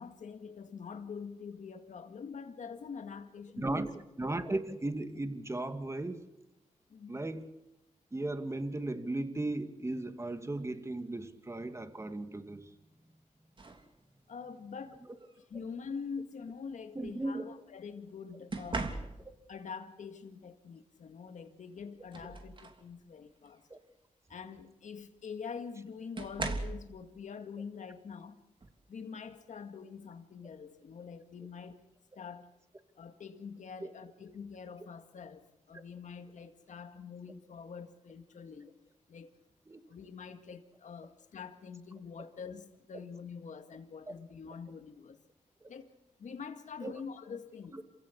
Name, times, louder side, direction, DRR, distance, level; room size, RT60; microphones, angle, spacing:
voice 1, 0.0-3.9 6.9-7.2 14.3-15.0 15.5-19.0 19.5-23.6 24.3-28.4 28.9-31.8 32.2-32.5 33.0-38.8 39.1-39.4 39.9-45.2 45.7-47.8, left 6 dB, 70° left, 2.1 m, -45 dB
voice 2, 3.6-3.9 4.2-6.3 7.1-7.5 8.1-12.7 15.5-15.6 17.0-17.4 23.7-23.8 33.8-33.9 39.7-39.8 45.6-45.7 46.8-46.9 47.7-47.8, right 2 dB, 20° right, 2.4 m, -36 dB
sound 1, 13.6-13.9 15.2-15.4 18.5-19.5 21.2-21.3 21.8-22.9 23.4-23.6 25.0-25.1 26.2-26.9 28.6-28.8 29.3-29.6, right 3 dB, 40° right, 3.1 m, -39 dB
27.5 x 16.0 x 8.3 m
cardioid pair, 65°, 13 cm